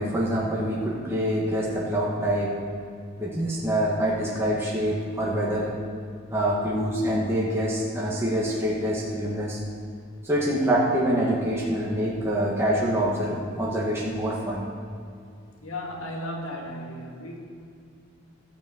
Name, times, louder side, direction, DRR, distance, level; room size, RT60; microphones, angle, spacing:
voice 1, 0.0-2.5 3.2-5.7 6.3-9.6 10.2-14.6, equal, 10° right, -5 dB, 1.5 m, -25 dB
voice 2, 15.6-17.4, left 1 dB, 85° left, 0 dB, 2.1 m, -35 dB
13.5 x 6.1 x 7.8 m, 2.3 s
head